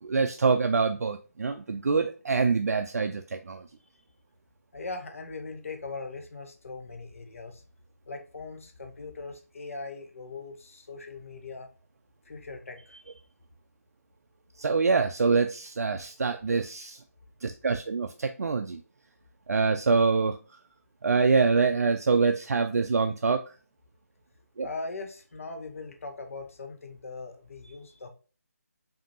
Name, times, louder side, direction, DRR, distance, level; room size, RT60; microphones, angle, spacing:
voice 1, 0.0-3.6 14.6-17.0 17.4-18.8 19.5-20.4 21.0-23.5 24.6-24.7, right 4 dB, 70° right, 6 dB, 0.4 m, -25 dB
voice 2, 4.7-7.6 8.1-11.7 12.3-13.2 24.6-28.1, left 3 dB, 55° left, 6 dB, 0.9 m, -40 dB
5.0 x 2.7 x 2.7 m, 0.36 s
figure-of-eight pair, 165°, 9 cm